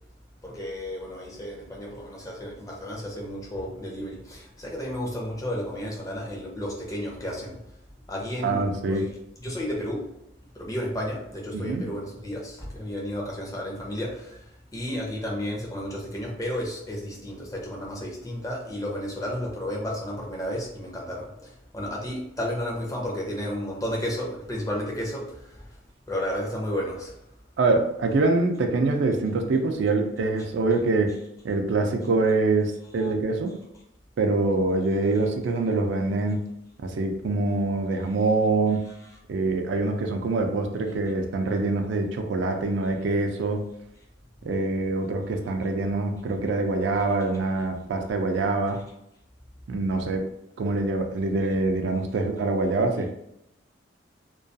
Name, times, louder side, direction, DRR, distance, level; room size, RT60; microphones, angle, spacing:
voice 1, 0.4-7.6 8.1-9.1 9.4-10.1 10.5-25.6 26.1-27.1 33.0-33.1 35.0-35.2 38.9-39.2, equal, 20° left, -2 dB, 0.5 m, -32 dB
voice 2, 8.4-9.0 11.5-11.8 27.6-31.1 31.4-33.5 34.2-36.4 36.8-38.8 39.3-43.6 44.4-48.8 49.7-50.3 50.6-53.1, right 3 dB, 75° right, 4 dB, 0.3 m, -25 dB
2.3 x 2.3 x 2.6 m, 0.81 s
head